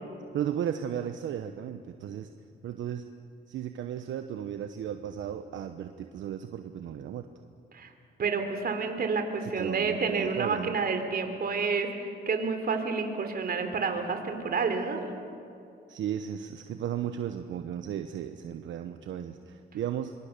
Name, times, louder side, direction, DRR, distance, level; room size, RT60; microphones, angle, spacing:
voice 1, 0.3-2.3 2.6-3.1 3.5-7.3 9.4-10.8 15.9-20.1, right 9 dB, 75° right, 8 dB, 1.0 m, -35 dB
voice 2, 8.2-11.9 12.3-15.1, right 5 dB, 50° right, 6 dB, 3.3 m, -29 dB
25.0 x 24.5 x 6.8 m, 2.5 s
cardioid pair, 90°, 20 cm